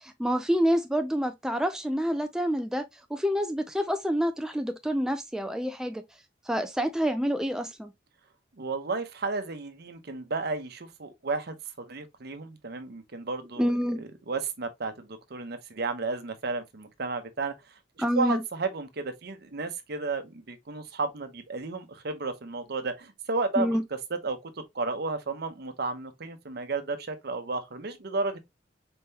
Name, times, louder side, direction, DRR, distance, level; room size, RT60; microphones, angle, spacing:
voice 1, 0.0-2.8 3.1-6.0 6.5-7.9 13.6-14.0 18.0-18.4 23.6-23.8, equal, 5° right, 0.3 m, -27 dB
voice 2, 8.6-13.7 14.0-17.5 18.2-23.8 24.2-28.4, right 3 dB, 60° right, 0.8 m, -33 dB
4.3 x 3.7 x 2.7 m
head